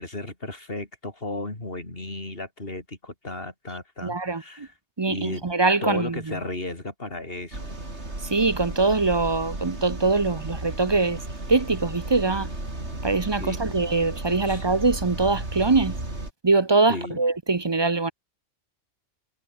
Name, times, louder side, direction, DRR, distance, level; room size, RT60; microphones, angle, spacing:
voice 1, 0.0-4.7 5.1-5.4 5.8-7.8 13.4-13.6 14.5-14.7 16.9-17.2, left 2 dB, 55° left, 4.6 m, -34 dB
voice 2, 4.0-4.7 5.0-6.2 8.2-11.2 11.5-12.5 13.0-16.0 16.4-18.1, right 3 dB, 25° right, 0.7 m, -23 dB
sound 1, 7.5-16.3, right 2 dB, 80° right, 5.6 m, -34 dB
omnidirectional pair, 1.1 m